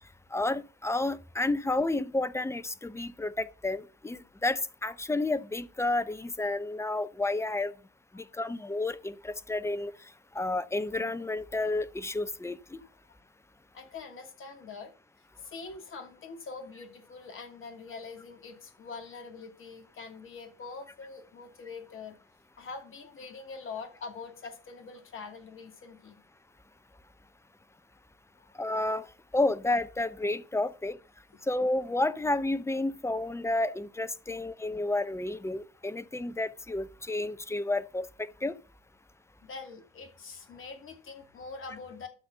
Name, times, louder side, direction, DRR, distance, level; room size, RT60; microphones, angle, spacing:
voice 1, 0.3-7.7 8.1-9.9 10.3-12.8 28.6-29.1 29.3-31.0 31.5-38.5, left 2 dB, 10° left, 0.6 m, -31 dB
voice 2, 13.7-14.9 15.2-22.2 22.6-26.2 39.4-42.1, left 4 dB, 40° left, 2.6 m, -44 dB
12.5 x 4.3 x 6.5 m
figure-of-eight pair, 65°, 33 cm